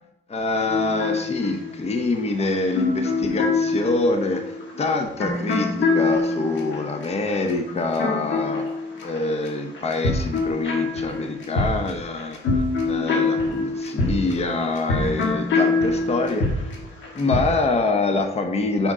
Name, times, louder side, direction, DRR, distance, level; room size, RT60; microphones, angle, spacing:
voice 1, 0.3-4.5 4.8-8.7 9.0-12.4 12.8-16.7 17.1-18.9, left 3 dB, 30° left, 5 dB, 0.9 m, -25 dB
sound 1, 0.7-9.5 9.7-17.6, left 3 dB, 70° left, 1.7 m, -25 dB
5.2 x 4.9 x 4.9 m, 0.78 s
cardioid pair, 90°, 20 cm